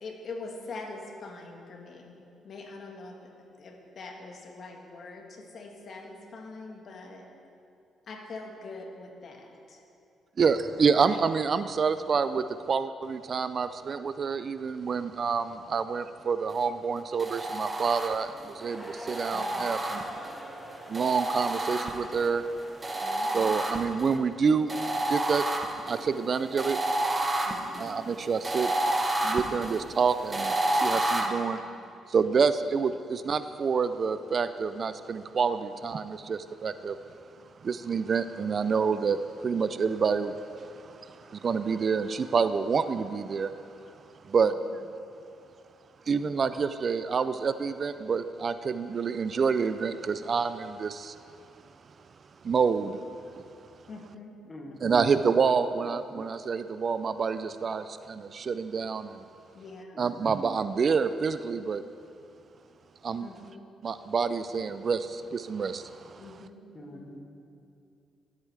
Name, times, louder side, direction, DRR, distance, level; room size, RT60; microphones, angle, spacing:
voice 1, 0.0-3.2 3.6-7.2 8.1-9.8 10.9-11.2 19.3-19.4 23.0-23.3 27.5-28.0 31.3-31.4 44.4-44.5 46.2-46.3 53.9-54.3 55.0-55.1 59.5-60.0 63.2-63.6 66.2-66.6 66.9-67.1, left 3 dB, 55° left, 2 dB, 1.4 m, -43 dB
voice 2, 10.4-20.0 20.9-22.5 23.3-25.5 25.8-27.3 27.8-31.6 32.1-37.0 37.6-44.8 46.1-51.2 52.4-53.0 53.3-53.5 54.8-59.2 60.0-61.8 63.0-63.3 63.8-66.4, right 5 dB, 45° right, 12 dB, 0.3 m, -28 dB
sound 1, 17.2-18.5 19.1-20.4 20.9-22.3 22.8-24.1 24.7-31.3, right 1 dB, 20° right, 0.8 m, -30 dB
sound 2, 18.6-23.8, equal, ahead, 1.3 m, -44 dB
voice 3, 54.4-55.0 59.9-60.3 66.7-67.2, left 1 dB, 30° left, 3 dB, 1.2 m, -45 dB
13.0 x 8.2 x 3.3 m, 2.6 s
cardioid pair, 90°, 0 cm